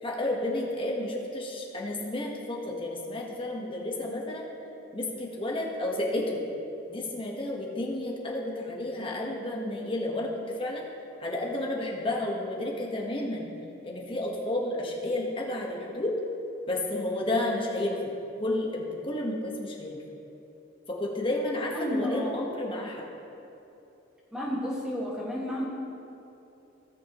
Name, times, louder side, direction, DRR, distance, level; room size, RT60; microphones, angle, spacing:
voice 1, 0.0-4.4 4.9-6.4 6.9-10.9 11.2-13.5 13.8-16.1 16.7-18.1 18.4-20.0 20.9-23.0, left 1 dB, 30° left, -2 dB, 1.4 m, -31 dB
voice 2, 21.7-22.4 24.3-25.7, equal, 5° right, -5 dB, 1.9 m, -31 dB
17.5 x 6.3 x 3.1 m, 2.8 s
head